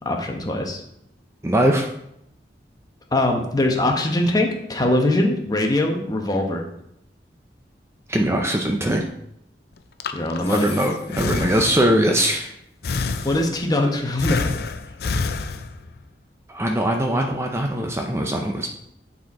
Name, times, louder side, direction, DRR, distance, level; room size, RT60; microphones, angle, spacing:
voice 1, 0.0-0.8 3.1-6.6 10.1-10.7 13.2-14.5, left 1 dB, 20° left, 3 dB, 1.0 m, -22 dB
voice 2, 1.4-1.9 8.1-9.0 10.4-12.5 16.5-18.7, right 1 dB, 15° right, 2 dB, 0.5 m, -21 dB
Breathing, 9.8-12.1 12.8-13.8 14.2-16.0, left 4 dB, 60° left, 0.5 m, -28 dB
9.0 x 4.3 x 4.2 m, 0.77 s
head